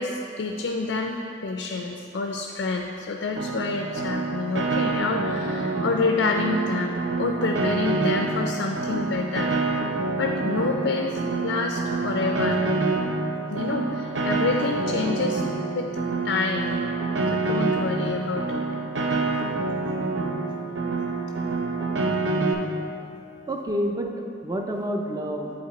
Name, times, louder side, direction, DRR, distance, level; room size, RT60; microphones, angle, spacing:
voice 1, 0.0-9.5 10.2-11.1 11.4-12.8 13.5-15.5 15.7-15.9 16.2-16.8 17.3-18.6, left 3 dB, 80° left, 3 dB, 0.4 m, -27 dB
Piano, 3.4-22.5, right 3 dB, 75° right, 0.6 m, -27 dB
voice 2, 23.5-25.5, equal, 20° right, 3 dB, 0.5 m, -28 dB
7.9 x 5.1 x 4.0 m, 2.8 s
head